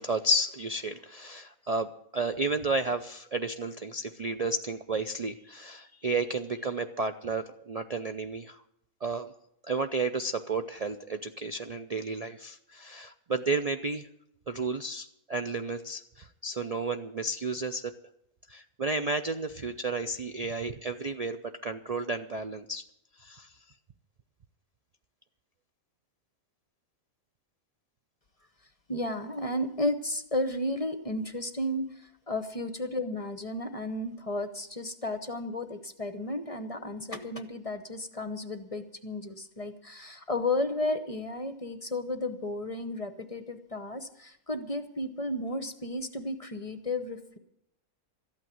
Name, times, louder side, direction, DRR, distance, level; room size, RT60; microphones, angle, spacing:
voice 1, 0.0-8.6 9.0-9.3 9.6-14.1 14.5-17.9 18.5-22.8 23.2-23.5, right 2 dB, 75° right, 8 dB, 0.3 m, -32 dB
voice 2, 28.9-47.4, left 1 dB, 30° left, 10 dB, 0.7 m, -33 dB
13.5 x 8.9 x 9.2 m, 0.78 s
omnidirectional pair, 1.5 m